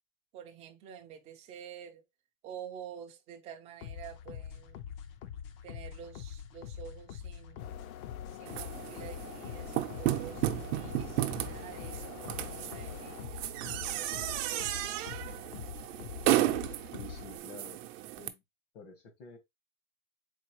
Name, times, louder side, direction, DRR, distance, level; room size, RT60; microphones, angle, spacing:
voice 1, 0.3-2.0 2.4-4.8 5.6-7.8 8.3-15.0, right 9 dB, 15° right, 0.4 m, -49 dB
sound 1, 3.8-17.4, left 8 dB, 45° left, 0.5 m, -44 dB
sound 2, 7.6-13.2, left 12 dB, 90° left, 0.6 m, -48 dB
sound 3, 8.5-18.3, right 14 dB, 60° right, 0.6 m, -34 dB
voice 2, 16.9-17.8 18.2-18.4 18.7-19.4, left 3 dB, 60° left, 1.2 m, -50 dB
4.1 x 2.7 x 3.0 m
supercardioid pair, 150°, 41 cm